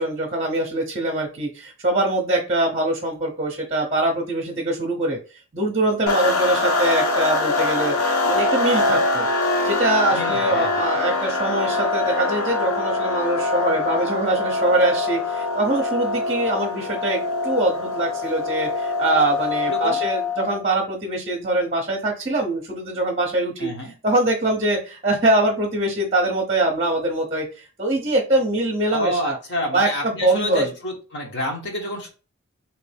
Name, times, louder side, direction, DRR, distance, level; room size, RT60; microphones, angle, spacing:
voice 1, 0.0-5.2 5.5-9.3 9.6-23.7 24.0-29.4 29.7-30.7, right 2 dB, 30° right, 1 dB, 0.8 m, -23 dB
sound 1, 6.1-20.6, left 3 dB, 80° left, 0.7 m, -23 dB
voice 2, 10.1-10.8 19.7-20.0 23.6-23.9 28.9-32.1, left 1 dB, 50° left, 1 dB, 1.2 m, -29 dB
3.2 x 2.9 x 3.4 m, 0.34 s
head